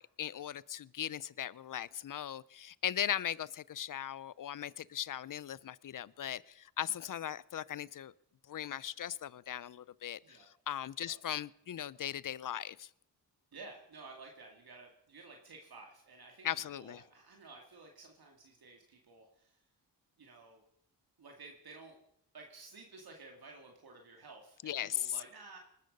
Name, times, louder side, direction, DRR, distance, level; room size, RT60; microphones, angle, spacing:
voice 1, 0.0-8.1 8.5-10.4 10.7-12.9 16.4-17.0 24.6-25.1, left 10 dB, 50° left, 0.6 m, -38 dB
voice 2, 13.5-19.6 20.2-20.6 21.2-22.0 22.3-25.6, right 3 dB, 60° right, 2.4 m, -53 dB
20.0 x 13.0 x 5.4 m
cardioid pair, 70°, 42 cm